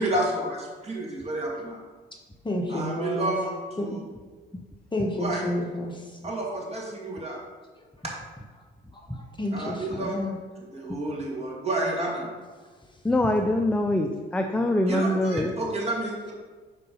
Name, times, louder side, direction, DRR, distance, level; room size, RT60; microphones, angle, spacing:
voice 1, 0.0-1.8 2.7-4.0 5.2-5.4 6.2-7.4 8.0-8.1 9.5-10.2 10.7-12.3 14.9-16.3, right 1 dB, 30° right, -3 dB, 2.1 m, -30 dB
voice 2, 2.4-3.3 3.8-3.9 4.9-6.2 8.9-10.3, left 1 dB, 25° left, 1 dB, 1.2 m, -30 dB
voice 3, 13.0-15.5, left 1 dB, 5° left, 4 dB, 0.4 m, -24 dB
5.7 x 4.7 x 5.3 m, 1.4 s
cardioid pair, 90°, 20 cm